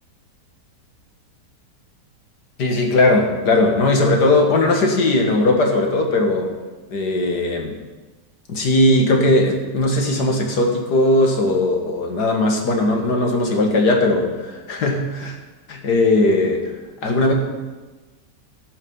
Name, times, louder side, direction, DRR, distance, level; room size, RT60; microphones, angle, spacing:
voice 1, 2.6-6.5 6.9-7.8 8.5-15.3 15.7-16.7 17.0-17.3, left 2 dB, 70° left, 2 dB, 2.3 m, -18 dB
16.5 x 6.4 x 5.6 m, 1.2 s
omnidirectional pair, 1.9 m